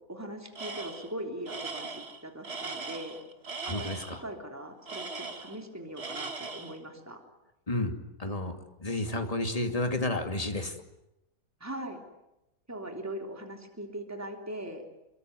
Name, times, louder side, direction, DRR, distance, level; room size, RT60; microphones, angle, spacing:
voice 1, 0.1-3.2 3.7-7.2 11.6-12.0 12.7-14.8, right 1 dB, 10° right, 3 dB, 3.3 m, -40 dB
Tools, 0.6-1.1 1.5-4.2 4.9-5.7 6.0-6.8, right 4 dB, 45° right, 2.2 m, -39 dB
voice 2, 3.6-4.2 7.7-7.9 8.2-10.8, left 2 dB, 25° left, 5 dB, 2.7 m, -31 dB
27.5 x 23.0 x 9.4 m, 0.90 s
omnidirectional pair, 1.4 m